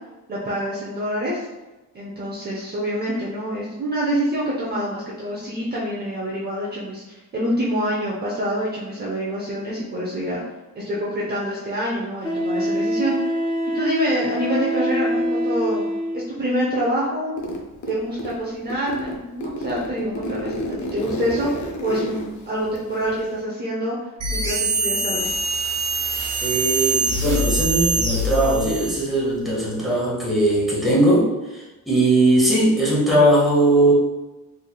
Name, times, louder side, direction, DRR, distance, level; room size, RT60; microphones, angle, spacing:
voice 1, 0.3-1.4 1.9-10.4 10.7-13.4 13.7-15.8 16.1-17.4 17.9-24.0 24.3-25.3, equal, 30° right, -6 dB, 0.6 m, -26 dB
Wind instrument woodwind instrument, 10.9-11.0 12.2-16.3, equal, 15° left, 0.3 m, -24 dB
Zipper (clothing), 17.4-18.4 18.7-23.4, equal, 55° left, 0.6 m, -31 dB
sound 1, 24.2-29.1, right 2 dB, 45° right, 1.3 m, -24 dB
voice 2, 26.4-33.9, right 1 dB, ahead, -6 dB, 0.9 m, -19 dB
4.1 x 3.2 x 2.2 m, 1.1 s
wide cardioid pair, 175°, 34 cm